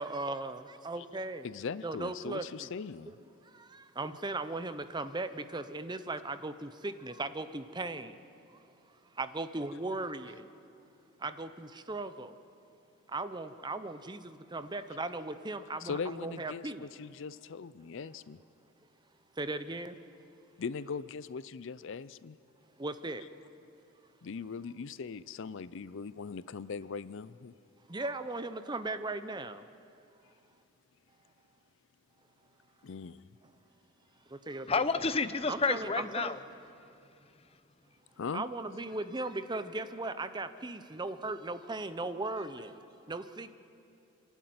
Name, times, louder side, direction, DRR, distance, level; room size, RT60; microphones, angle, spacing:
voice 1, 0.0-1.5 1.8-2.7 3.1-3.2 3.5-8.2 9.2-10.5 11.2-12.4 13.1-16.9 19.4-20.0 22.8-23.2 27.9-29.7 34.3-34.7 35.5-36.4 38.3-43.5, right 2 dB, 20° right, 11 dB, 0.7 m, -38 dB
voice 2, 1.4-3.1 15.8-18.4 20.6-22.4 24.2-27.5 32.8-33.2 38.2-38.5, left 5 dB, 60° left, 16 dB, 0.4 m, -40 dB
voice 3, 34.7-36.4, left 4 dB, 30° left, 12 dB, 0.7 m, -30 dB
27.5 x 12.0 x 9.4 m, 2.6 s
head